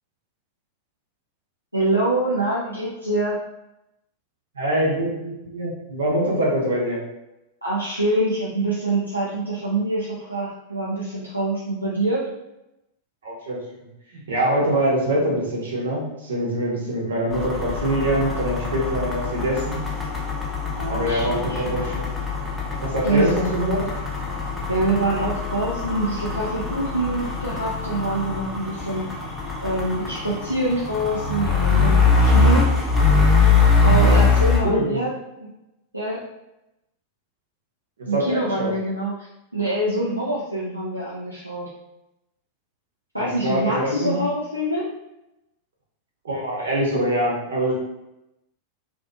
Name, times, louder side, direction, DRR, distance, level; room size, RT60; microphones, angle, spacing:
voice 1, 1.7-3.4 7.6-12.2 20.7-21.8 23.0-23.4 24.7-29.1 29.6-32.7 33.8-35.1 35.4-35.5 35.9-36.2 38.1-41.7 43.1-44.9, right 1 dB, 90° right, -6 dB, 0.4 m, -25 dB
voice 2, 4.5-7.0 13.2-13.6 14.3-19.8 20.9-22.1 22.8-23.8 34.0-34.1 34.6-35.1 38.0-38.7 43.2-44.2 46.2-47.7, right 1 dB, 65° right, -3 dB, 0.8 m, -24 dB
sound 1, 17.3-34.6, left 3 dB, 10° left, 0.6 m, -22 dB
2.6 x 2.4 x 2.2 m, 0.91 s
figure-of-eight pair, 90°, 0 cm